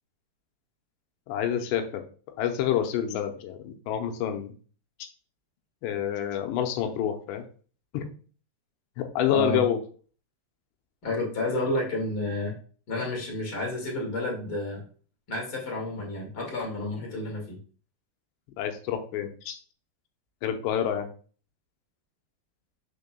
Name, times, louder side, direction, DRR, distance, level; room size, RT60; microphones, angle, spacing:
voice 1, 1.3-2.0 2.4-4.5 5.8-7.4 7.9-8.1 9.0-9.8 18.6-19.6 20.4-21.1, left 10 dB, 80° left, 6 dB, 2.9 m, -28 dB
voice 2, 9.2-9.6 11.0-12.6 12.9-14.8 15.3-17.6, left 2 dB, 50° left, -1 dB, 1.2 m, -30 dB
6.8 x 6.4 x 2.3 m, 0.41 s
omnidirectional pair, 5.2 m